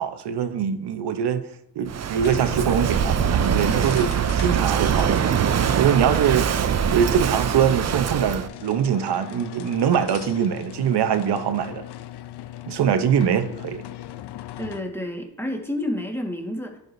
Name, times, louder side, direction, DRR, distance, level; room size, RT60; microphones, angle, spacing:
voice 1, 0.0-1.4 1.8-5.3 5.8-6.5 6.8-11.8 12.7-13.8, right 8 dB, 70° right, 0.8 m, -23 dB
Walk footsteps / Wind / Waves surf, 1.9-8.5, right 8 dB, 40° right, 0.5 m, -23 dB
sound 1, 2.1-15.0, left 13 dB, 70° left, 0.6 m, -40 dB
voice 2, 14.6-16.8, left 1 dB, 5° left, 1.5 m, -29 dB
11.0 x 4.9 x 2.6 m
cardioid pair, 70°, 42 cm